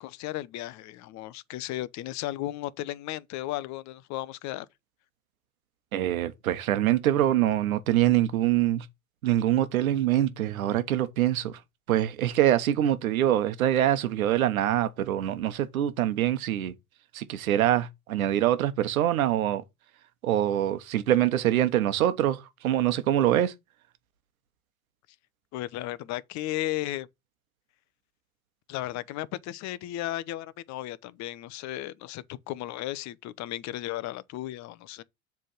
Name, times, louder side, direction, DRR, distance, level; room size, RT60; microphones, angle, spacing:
voice 1, 0.0-4.7 25.5-27.1 28.7-35.0, left 15 dB, 40° left, 0.7 m, -35 dB
voice 2, 5.9-8.9 9.2-11.6 11.9-16.7 17.1-19.6 20.2-23.5, right 12 dB, 75° right, 1.1 m, -24 dB
7.5 x 3.5 x 6.3 m
hypercardioid pair, 80°, 42 cm